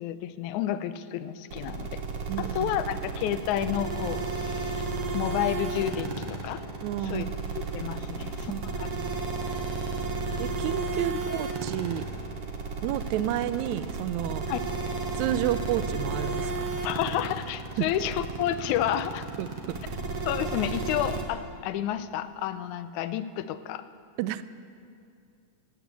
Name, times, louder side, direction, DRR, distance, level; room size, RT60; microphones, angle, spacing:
voice 1, 0.0-2.0 2.4-4.8 5.1-6.6 7.0-7.3 7.6-9.0 14.5-14.6 16.8-19.3 20.3-23.8, left 11 dB, 85° left, 13 dB, 2.1 m, -30 dB
sound 1, 1.5-21.2, right 3 dB, 60° right, 2.4 m, -32 dB
voice 2, 2.3-2.7 6.8-7.3 8.5-9.2 10.4-12.0 12.8-14.5 15.1-16.8 17.8-17.9 19.4-20.0 24.2-24.4, right 12 dB, 80° right, 15 dB, 1.9 m, -31 dB
18.0 x 9.1 x 8.2 m, 2.4 s
omnidirectional pair, 3.3 m